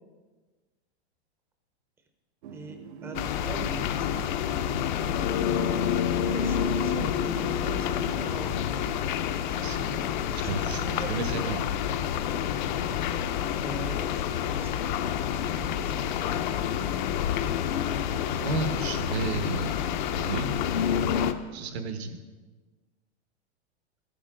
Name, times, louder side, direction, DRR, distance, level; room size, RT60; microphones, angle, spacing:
sound 1, 2.4-8.5, right 8 dB, 50° right, 0.6 m, -43 dB
voice 1, 2.5-4.4 5.2-5.9 6.2-8.9 10.4-11.4 13.6-14.7 15.4-17.1 17.8-18.4 18.8-19.2, right 2 dB, 5° right, 5 dB, 0.6 m, -43 dB
sound 2, 3.1-21.3, left 9 dB, 45° left, 0.6 m, -28 dB
voice 2, 9.5-11.6 18.3-19.7 20.1-20.5 21.5-22.2, right 4 dB, 70° right, 7 dB, 1.4 m, -33 dB
13.5 x 10.5 x 3.8 m, 1.3 s
supercardioid pair, 165°, 33 cm